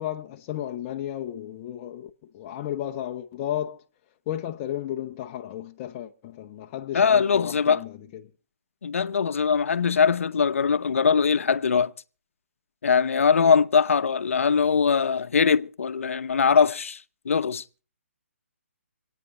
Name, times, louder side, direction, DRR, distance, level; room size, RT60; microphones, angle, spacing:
voice 1, 0.0-3.8 4.3-8.2, left 11 dB, 20° left, 0.7 m, -33 dB
voice 2, 6.9-7.8 8.8-11.9 12.8-17.6, left 6 dB, 65° left, 0.8 m, -21 dB
27.0 x 9.1 x 4.2 m
hypercardioid pair, 160°, 8 cm